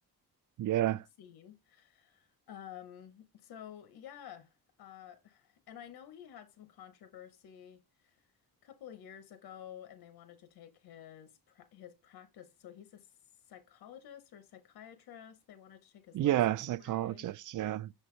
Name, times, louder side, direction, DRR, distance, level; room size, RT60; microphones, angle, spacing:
voice 1, 0.6-1.0 16.1-17.9, right 13 dB, 55° right, 0.5 m, -30 dB
voice 2, 1.2-8.3 8.6-13.1 13.5-17.3, left 10 dB, 85° left, 0.9 m, -51 dB
6.5 x 5.5 x 3.1 m
cardioid pair, 90°, 37 cm